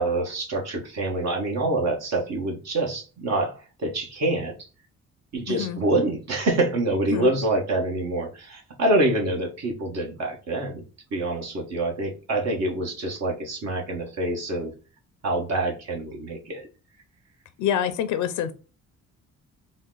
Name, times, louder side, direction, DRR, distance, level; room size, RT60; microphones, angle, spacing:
voice 1, 0.0-4.6 5.3-10.8 11.1-14.7 15.2-16.7, right 2 dB, 60° right, 0 dB, 1.2 m, -26 dB
voice 2, 5.5-5.8 7.1-7.3 17.6-18.5, left 9 dB, 80° left, 12 dB, 0.5 m, -26 dB
3.9 x 2.1 x 3.7 m, 0.33 s
cardioid pair, 90°, 30 cm